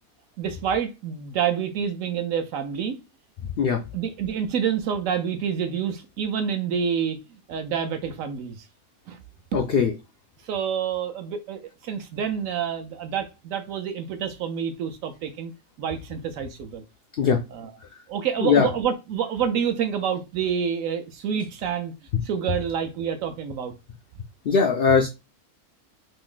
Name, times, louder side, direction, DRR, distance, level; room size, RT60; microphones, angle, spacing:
voice 1, 0.4-3.0 3.9-8.6 9.1-9.2 10.4-15.5 15.8-16.8 17.5-17.7 18.1-21.9 22.2-23.7, right 8 dB, 70° right, 0.9 m, -28 dB
voice 2, 9.5-9.9 17.2-17.4 18.4-18.7 24.4-25.1, left 6 dB, 85° left, 0.5 m, -20 dB
3.0 x 2.5 x 3.8 m
omnidirectional pair, 1.6 m